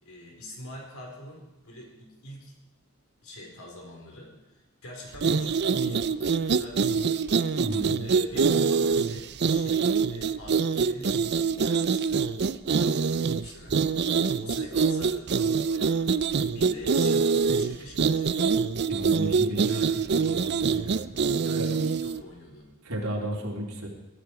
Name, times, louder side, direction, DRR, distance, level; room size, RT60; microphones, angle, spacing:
voice 1, 0.0-2.6 3.2-7.6 8.0-12.3 12.7-14.1 14.4-18.4 19.6-20.1 21.3-22.7, left 1 dB, 70° left, 1 dB, 4.8 m, -44 dB
sound 1, 5.1-22.2, right 5 dB, 50° right, 0.5 m, -25 dB
voice 2, 7.6-8.0 18.9-19.8 20.1-21.2 21.6-21.7 22.8-23.9, right 1 dB, 80° right, 0 dB, 3.6 m, -33 dB
22.5 x 12.5 x 4.9 m, 0.98 s
head